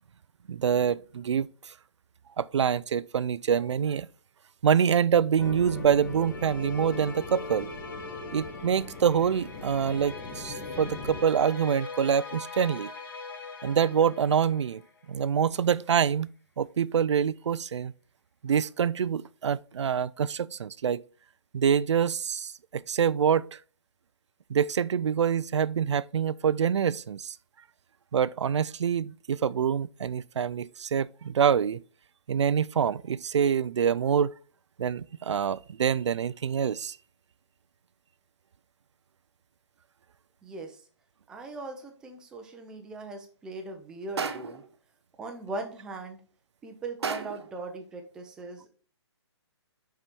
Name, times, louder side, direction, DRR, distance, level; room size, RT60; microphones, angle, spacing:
voice 1, 0.5-1.7 2.4-4.1 4.6-7.7 8.3-12.9 13.6-14.8 15.1-16.3 16.6-17.9 18.4-21.0 21.5-23.6 24.5-27.4 28.1-31.8 32.3-34.3 34.8-37.0, right 7 dB, 90° right, 0.4 m, -26 dB
sound 1, 5.4-15.1, left 3 dB, 50° left, 1.8 m, -42 dB
sound 2, 5.4-11.2, left 3 dB, 15° left, 1.0 m, -42 dB
voice 2, 40.4-40.8 41.3-44.6 45.2-46.2 46.6-48.7, right 2 dB, 5° right, 0.5 m, -39 dB
sound 3, 44.2-44.7 47.0-47.6, right 5 dB, 70° right, 1.1 m, -33 dB
6.2 x 4.8 x 4.4 m
hypercardioid pair, 165°, 15 cm